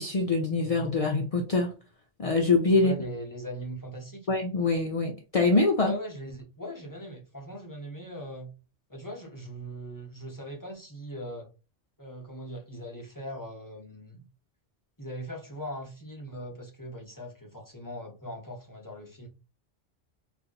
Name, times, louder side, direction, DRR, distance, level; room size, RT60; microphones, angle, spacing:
voice 1, 0.0-1.8 2.2-2.9 4.3-5.9, left 3 dB, 70° left, 0.3 m, -24 dB
voice 2, 2.7-4.3 5.8-8.5 8.9-11.5 12.0-14.2 15.0-19.3, equal, 20° left, 0.6 m, -40 dB
2.7 x 2.6 x 3.8 m
omnidirectional pair, 1.2 m